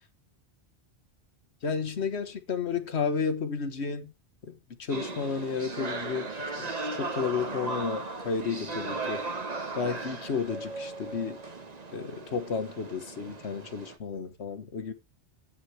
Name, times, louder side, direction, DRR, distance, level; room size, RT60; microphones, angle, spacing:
voice 1, 1.6-4.1 4.4-6.3 6.6-9.2 9.8-11.4 11.9-14.9, left 5 dB, 75° left, 1.4 m, -32 dB
sound 1, 4.9-14.0, right 3 dB, 35° right, 1.3 m, -37 dB
9.7 x 8.1 x 4.5 m
omnidirectional pair, 1.1 m